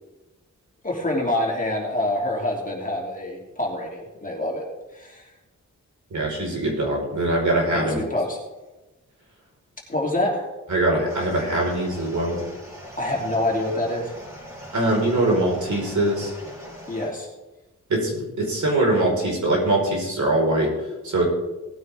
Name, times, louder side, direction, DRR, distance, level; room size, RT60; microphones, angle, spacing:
voice 1, 0.8-4.6 4.9-5.2 7.7-8.4 9.9-10.5 13.0-14.1 16.9-17.3, left 1 dB, 25° left, -2 dB, 3.2 m, -26 dB
voice 2, 6.1-8.0 10.7-12.4 14.7-16.3 17.9-20.7 21.0-21.3, right 1 dB, 70° right, -2 dB, 4.9 m, -22 dB
sound 1, 11.1-17.1, equal, 10° right, 4.8 m, -41 dB
18.0 x 9.3 x 3.7 m, 1.1 s
wide cardioid pair, 95°, 30 cm